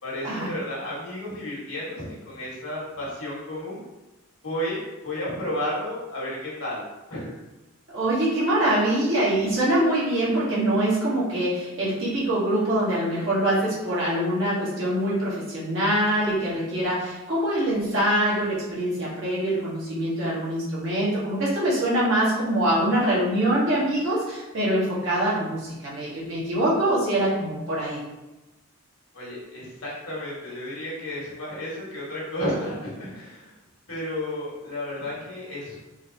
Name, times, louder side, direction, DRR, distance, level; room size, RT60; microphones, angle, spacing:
voice 1, 0.0-3.8 4.4-7.4 29.1-33.5 33.9-35.8, left 1 dB, 85° left, -6 dB, 1.5 m, -32 dB
voice 2, 7.9-28.0, right 1 dB, 60° right, -8 dB, 1.4 m, -24 dB
3.9 x 2.8 x 2.7 m, 1.0 s
head